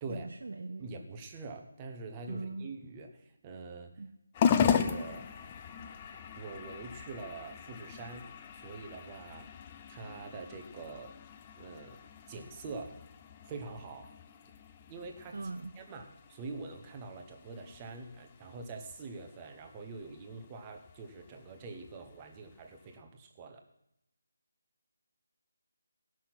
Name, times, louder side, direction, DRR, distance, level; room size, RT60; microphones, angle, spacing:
voice 1, 0.1-0.9 2.3-2.7 4.0-4.1 15.3-15.7, right 3 dB, 55° right, 4 dB, 0.7 m, -40 dB
voice 2, 0.8-3.9 4.5-5.3 6.4-9.5 9.9-11.1 11.6-12.0 12.3-12.9 13.5-14.1 14.9-15.4 15.8-23.6, right 3 dB, 15° right, 3 dB, 0.9 m, -44 dB
sound 1, 4.3-23.0, left 7 dB, 15° left, 0.4 m, -38 dB
16.5 x 6.1 x 6.0 m, 0.82 s
figure-of-eight pair, 175°, 0 cm